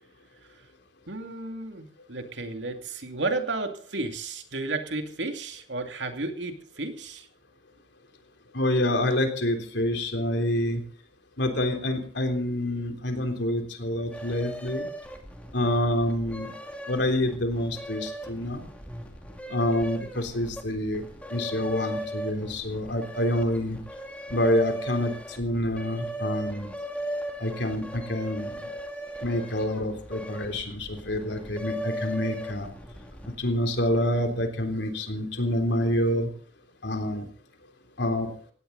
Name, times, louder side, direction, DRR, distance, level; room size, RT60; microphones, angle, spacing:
voice 1, 1.1-7.3, right 3 dB, 75° right, 5 dB, 2.6 m, -33 dB
voice 2, 8.5-10.8 11.4-14.9 15.5-16.5 16.9-18.6 19.5-21.0 21.3-23.8 24.3-26.7 27.4-28.7 29.2-32.7 33.4-36.3 36.8-37.3 38.0-38.3, left 1 dB, 65° left, 5 dB, 3.5 m, -27 dB
sound 1, 14.1-33.5, right 1 dB, 5° left, 2.5 m, -38 dB
18.0 x 17.0 x 4.1 m, 0.44 s
head